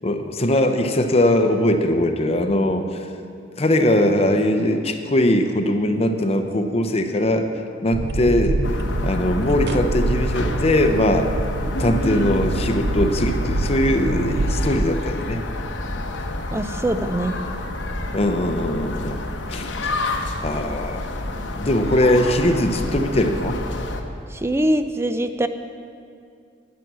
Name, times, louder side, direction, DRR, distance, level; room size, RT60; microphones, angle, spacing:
voice 1, 0.0-3.1 3.5-7.5 7.8-8.6 9.0-11.3 11.8-15.4 18.1-20.0 20.4-21.1 21.4-23.7, left 1 dB, 35° left, 6 dB, 0.7 m, -21 dB
sound 1, 7.9-14.9, right 2 dB, 60° right, 0.5 m, -25 dB
sound 2, 8.6-24.0, left 2 dB, 85° left, 0.9 m, -29 dB
voice 2, 16.5-17.4 24.3-25.5, right 1 dB, 15° right, 10 dB, 0.4 m, -23 dB
10.5 x 9.4 x 6.2 m, 2.4 s
head